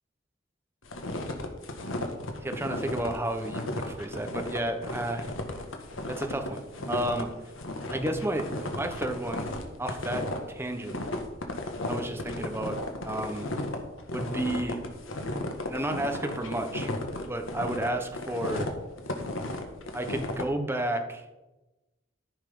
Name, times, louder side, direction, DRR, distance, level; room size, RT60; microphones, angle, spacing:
sound 1, 0.8-20.4, left 1 dB, 80° left, 1.6 m, -34 dB
voice 1, 2.4-5.3 6.1-6.6 6.9-7.3 7.9-9.5 9.8-11.0 11.9-12.8 13.0-13.5 14.1-14.8 15.7-16.9 17.3-18.7 19.9-21.2, right 1 dB, 10° right, 5 dB, 1.0 m, -32 dB
14.0 x 5.7 x 5.5 m, 1.0 s
head